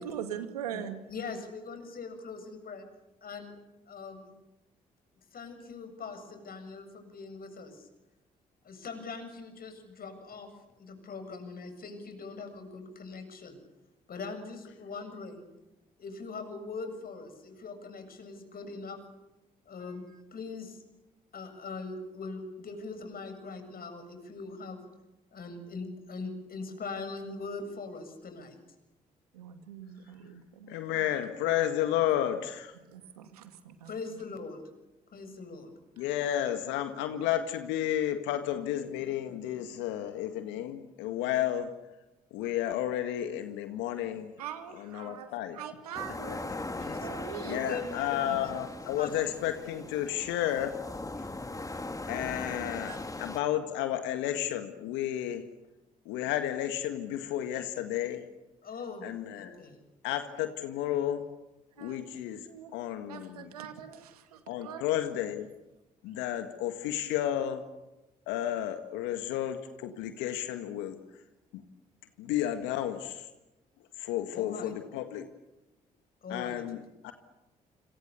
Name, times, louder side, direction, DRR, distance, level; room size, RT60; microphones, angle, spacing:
voice 1, 0.0-1.0 19.8-20.2 29.3-31.1 32.9-33.9 42.4-42.5 44.4-46.5 47.0-47.8 48.2-48.4 52.9-53.0 61.8-62.1 62.5-62.8 63.1-64.8 65.2-65.4, right 9 dB, 90° right, 8 dB, 2.2 m, -42 dB
voice 2, 1.1-2.9 3.2-3.6 3.9-4.3 5.3-7.9 8.6-10.5 10.8-13.6 14.1-15.4 16.0-19.0 19.7-20.8 21.3-24.8 25.3-28.6 33.9-34.6 35.1-35.7 46.8-47.1 47.5-48.5 49.0-49.1 49.6-49.7 58.6-59.1 59.4-59.8 74.3-74.7 76.2-76.6, left 4 dB, 50° left, 8 dB, 7.2 m, -41 dB
voice 3, 30.7-32.7 36.0-41.7 42.3-44.3 44.7-45.6 46.3-46.4 47.5-50.8 51.2-51.3 52.1-55.5 56.1-58.3 59.0-59.6 60.0-61.3 61.8-63.5 64.5-65.5 66.0-67.6 68.3-71.0 71.5-71.6 72.2-73.3 74.0-75.3 76.3-77.1, left 11 dB, 75° left, 8 dB, 1.8 m, -32 dB
sound 1, 45.9-53.4, left 2 dB, 20° left, 2.6 m, -39 dB
29.5 x 27.5 x 7.0 m, 0.98 s
hypercardioid pair, 45°, 19 cm